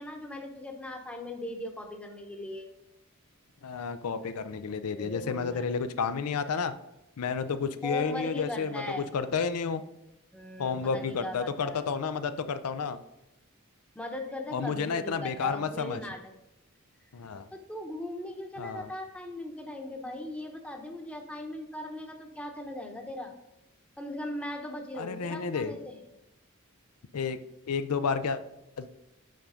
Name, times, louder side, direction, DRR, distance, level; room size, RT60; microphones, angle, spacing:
voice 1, 0.0-2.7 4.9-5.7 7.8-9.1 10.3-11.8 13.9-16.2 17.5-23.3 24.0-26.1, left 1 dB, 5° left, 3 dB, 0.8 m, -39 dB
voice 2, 3.6-6.8 7.2-9.8 10.6-13.0 14.5-16.0 17.1-17.5 18.6-18.9 25.0-25.8 27.1-27.4 27.7-28.4 28.8-28.9, left 5 dB, 85° left, 11 dB, 0.5 m, -31 dB
5.8 x 5.1 x 4.8 m, 0.91 s
head